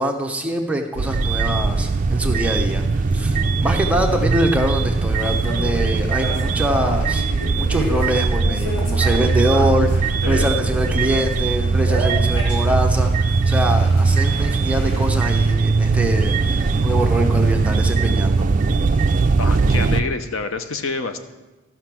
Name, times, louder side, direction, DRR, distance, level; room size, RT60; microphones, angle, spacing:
voice 1, 0.0-7.3 7.5-18.5, equal, 5° right, 2 dB, 0.7 m, -24 dB
sound 1, 1.0-20.0, right 4 dB, 35° right, 0.4 m, -20 dB
sound 2, 5.5-11.4 11.9-15.5, left 1 dB, 90° left, 4.3 m, -32 dB
voice 2, 19.4-21.2, left 4 dB, 65° left, 9 dB, 0.7 m, -27 dB
13.5 x 5.9 x 6.0 m, 1.2 s
head